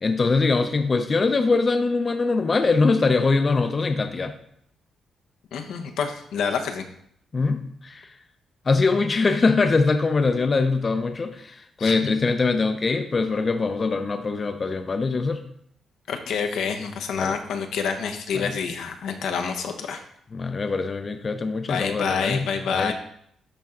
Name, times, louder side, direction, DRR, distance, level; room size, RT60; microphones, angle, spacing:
voice 1, 0.0-4.3 7.3-8.0 8.7-15.4 17.2-17.4 18.3-18.5 20.3-22.9, left 3 dB, 30° left, 7 dB, 0.6 m, -23 dB
voice 2, 5.5-6.8 11.8-12.1 16.1-20.0 21.7-22.9, left 6 dB, 85° left, 4 dB, 0.9 m, -27 dB
11.5 x 4.4 x 3.8 m, 0.68 s
cardioid pair, 120°, 0 cm